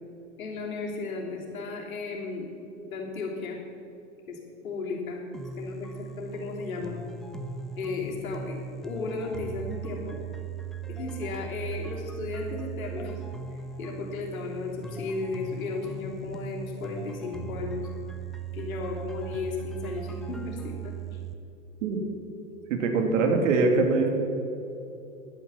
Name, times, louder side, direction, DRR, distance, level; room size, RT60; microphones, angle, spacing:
voice 1, 0.4-2.5 2.9-3.6 4.3-4.4 4.6-5.2 5.6-6.9 7.8-10.2 10.9-13.2 13.5-17.9 18.5-21.2, left 3 dB, 70° left, -2 dB, 3.3 m, -35 dB
sound 1, 5.3-21.3, right 5 dB, ahead, 0.5 m, -38 dB
voice 2, 22.7-24.2, right 3 dB, 60° right, 3 dB, 2.4 m, -23 dB
11.5 x 9.4 x 7.2 m, 2.8 s
figure-of-eight pair, 100°, 43 cm